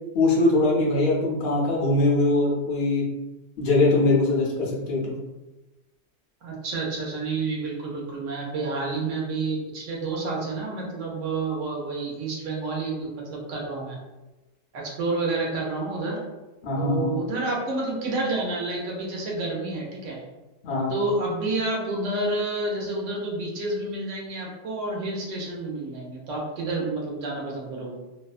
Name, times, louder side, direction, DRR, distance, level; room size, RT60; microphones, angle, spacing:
voice 1, 0.1-3.0 3.6-5.1 16.6-17.1 20.6-20.9, left 2 dB, 65° left, -4 dB, 0.6 m, -22 dB
voice 2, 6.4-14.0 14.7-16.2 16.8-20.2 20.9-28.0, right 2 dB, 60° right, -2 dB, 0.9 m, -29 dB
2.6 x 2.2 x 2.4 m, 1.1 s
omnidirectional pair, 1.6 m